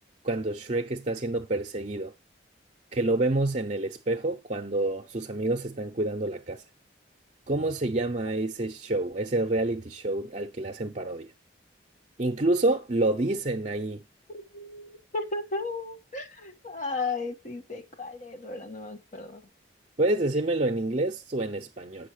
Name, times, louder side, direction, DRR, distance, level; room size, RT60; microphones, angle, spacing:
voice 1, 0.2-2.1 2.9-6.6 7.5-11.3 12.2-14.0 20.0-22.1, right 2 dB, 40° right, 0.6 m, -28 dB
voice 2, 14.3-19.4, left 3 dB, 40° left, 1.3 m, -35 dB
8.4 x 6.3 x 4.8 m
head